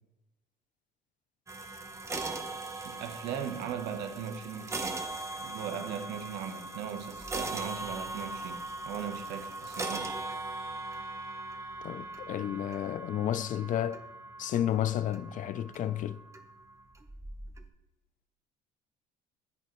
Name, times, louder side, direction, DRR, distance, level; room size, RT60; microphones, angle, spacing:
sound 1, 1.5-17.7, right 2 dB, 15° right, 0.9 m, -40 dB
voice 1, 2.8-5.2 5.4-10.2, right 8 dB, 85° right, 1.0 m, -38 dB
voice 2, 11.8-14.0 14.4-16.2, left 11 dB, 50° left, 0.5 m, -31 dB
9.7 x 9.5 x 3.1 m
cardioid pair, 110°, 17 cm